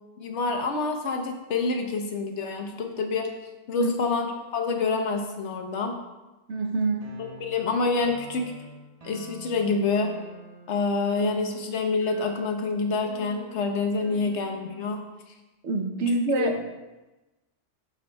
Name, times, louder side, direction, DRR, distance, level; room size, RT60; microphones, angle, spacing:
voice 1, 0.2-3.3 3.7-6.0 7.2-8.5 9.0-10.1 10.7-15.0 16.4-16.5, left 4 dB, 70° left, 4 dB, 1.1 m, -27 dB
voice 2, 6.5-7.2 15.6-16.6, right 2 dB, 75° right, 4 dB, 1.1 m, -26 dB
sound 1, 7.0-14.9, right 1 dB, 35° right, 0.9 m, -47 dB
12.0 x 5.2 x 2.2 m, 1.1 s
omnidirectional pair, 1.2 m